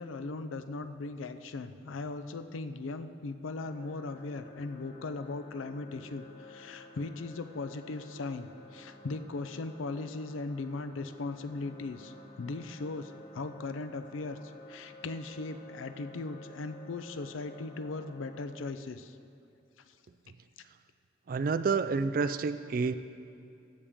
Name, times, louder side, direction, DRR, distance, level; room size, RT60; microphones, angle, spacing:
voice 1, 0.0-19.2 19.9-20.0 21.3-21.4, left 3 dB, 90° left, 10 dB, 0.5 m, -38 dB
sound 1, 3.6-18.4, left 1 dB, 25° left, 1.4 m, -52 dB
voice 2, 21.3-22.9, right 4 dB, 45° right, 12 dB, 0.3 m, -29 dB
16.0 x 6.8 x 3.6 m, 2.6 s
head